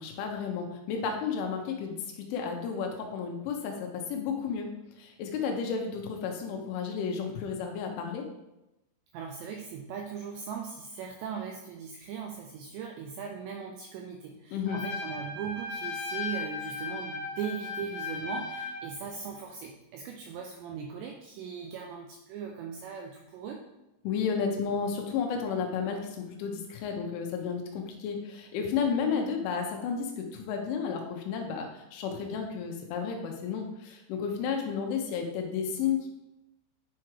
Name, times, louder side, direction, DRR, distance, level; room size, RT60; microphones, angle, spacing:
voice 1, 0.0-8.3 14.5-14.8 24.0-36.1, left 6 dB, 80° left, 2 dB, 3.4 m, -32 dB
voice 2, 9.1-23.7, right 6 dB, 85° right, 2 dB, 2.5 m, -39 dB
Trumpet, 14.6-18.9, left 4 dB, 45° left, 2.1 m, -36 dB
9.7 x 5.9 x 3.2 m, 0.94 s
omnidirectional pair, 5.7 m